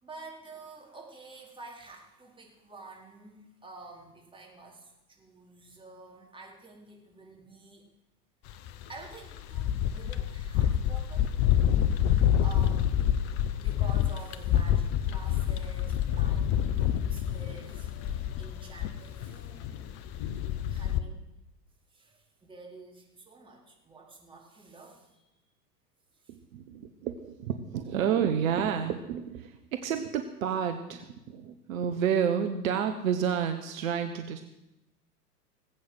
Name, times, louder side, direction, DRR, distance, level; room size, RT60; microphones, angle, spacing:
voice 1, 0.0-7.9 8.9-11.3 12.4-13.0 13.6-20.0 20.7-21.3 21.9-25.2 26.2-26.4, right 3 dB, 10° right, -1 dB, 4.4 m, -49 dB
sound 1, 8.5-21.0, left 10 dB, 40° left, 1.0 m, -27 dB
voice 2, 26.3-34.4, right 8 dB, 55° right, 7 dB, 1.4 m, -30 dB
19.5 x 8.6 x 8.1 m, 0.93 s
figure-of-eight pair, 95°, 47 cm